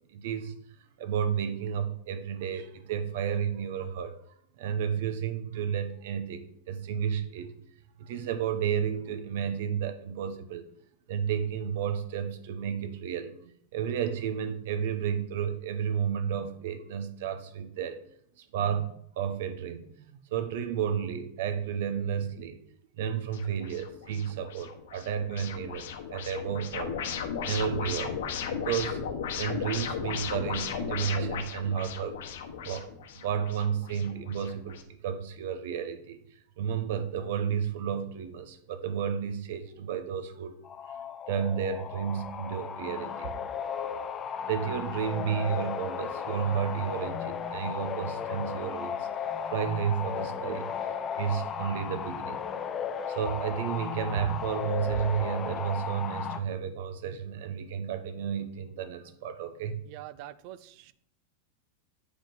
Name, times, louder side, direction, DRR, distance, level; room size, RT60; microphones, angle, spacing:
voice 1, 0.1-0.5 1.0-4.1 4.6-7.5 8.0-10.7 11.1-18.0 18.4-19.9 20.3-22.6 23.0-26.9 27.2-28.1 28.5-29.0 29.4-32.2 32.6-36.2 36.6-40.6 41.3-43.3 44.5-49.1 49.5-50.7 51.1-52.4 53.1-59.8, right 8 dB, 60° right, 10 dB, 0.9 m, -32 dB
sound 1, 23.3-34.8, left 7 dB, 75° left, 1.1 m, -36 dB
sound 2, 40.6-56.4, left 7 dB, 20° left, 0.5 m, -35 dB
voice 2, 59.8-60.9, right 13 dB, 40° right, 16 dB, 0.4 m, -45 dB
9.1 x 4.9 x 4.0 m, 0.66 s
supercardioid pair, 170°, 0 cm